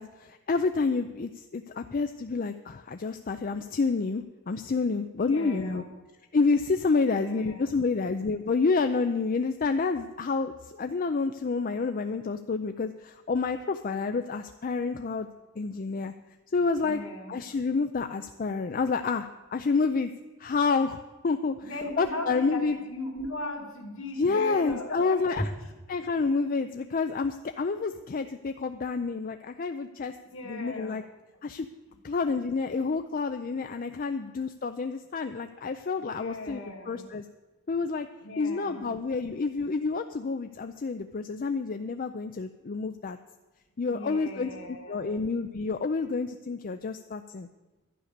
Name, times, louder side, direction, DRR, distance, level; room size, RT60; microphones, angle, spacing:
voice 1, 0.0-5.8 6.3-15.3 15.6-16.1 16.5-17.0 17.3-20.1 20.4-21.7 22.0-22.8 24.2-25.5 25.9-30.1 30.4-31.0 31.4-31.7 32.0-37.2 37.7-38.1 38.4-43.2 43.8-47.5, left 4 dB, 40° left, 8 dB, 0.4 m, -29 dB
voice 2, 5.2-5.9 7.1-7.8 16.8-17.4 21.6-25.7 30.3-31.0 36.0-37.1 38.2-38.9 43.9-45.2, left 1 dB, 60° left, 2 dB, 2.2 m, -38 dB
12.0 x 9.7 x 6.7 m, 1.2 s
head